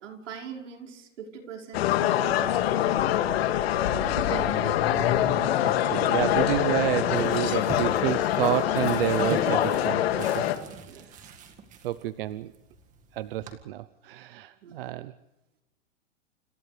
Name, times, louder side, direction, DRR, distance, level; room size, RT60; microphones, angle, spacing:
voice 1, 0.0-2.7 7.4-7.7 10.8-11.1 14.6-14.8, right 7 dB, 70° right, 1 dB, 5.4 m, -43 dB
sound 1, 1.7-10.6, left 11 dB, 55° left, 2.3 m, -24 dB
sound 2, 3.8-10.3, left 8 dB, 85° left, 4.1 m, -42 dB
voice 2, 3.9-10.4 11.8-12.5 13.1-15.1, right 14 dB, 50° right, 13 dB, 0.7 m, -30 dB
sound 3, 6.5-13.5, right 5 dB, 20° right, 2.0 m, -41 dB
29.5 x 28.0 x 3.4 m, 0.97 s
hypercardioid pair, 155°, 37 cm